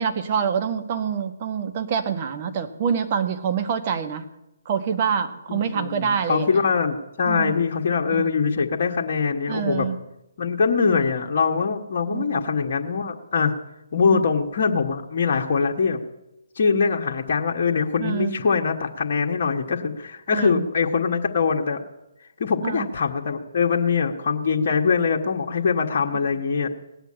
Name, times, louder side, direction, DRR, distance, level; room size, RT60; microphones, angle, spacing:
voice 1, 0.0-4.2 4.6-6.5 7.2-7.6 8.1-8.3 9.5-10.0 12.1-12.4 14.1-14.2 18.0-18.3 20.3-20.7 22.6-22.9, right 7 dB, 40° right, 8 dB, 1.4 m, -26 dB
voice 2, 5.5-9.9 10.4-13.6 13.9-16.0 16.5-21.8 22.4-26.7, left 5 dB, 50° left, 2 dB, 1.5 m, -23 dB
18.5 x 7.9 x 8.7 m, 0.91 s
hypercardioid pair, 145°, 0 cm